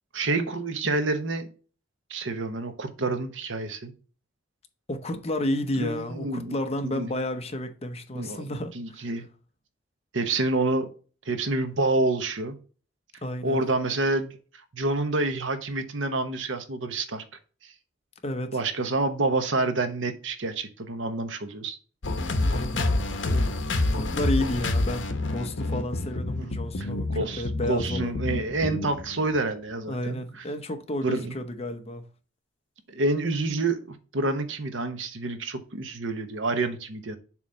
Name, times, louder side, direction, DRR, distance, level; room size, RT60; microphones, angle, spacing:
voice 1, 0.1-1.5 2.1-3.9 5.8-6.6 6.8-7.1 8.1-8.5 8.7-9.3 10.1-10.9 11.3-12.5 13.4-14.4 14.7-17.2 18.5-21.8 26.4-30.4 31.0-31.3 32.9-37.2, right 2 dB, 80° right, 1.0 m, -28 dB
voice 2, 4.9-9.1 13.2-13.6 18.2-18.6 22.4-23.0 23.3-23.5 23.9-28.2 29.9-32.0, left 1 dB, 35° left, 0.8 m, -31 dB
sound 1, 22.0-29.6, left 2 dB, 70° left, 0.9 m, -28 dB
7.2 x 3.1 x 5.2 m
head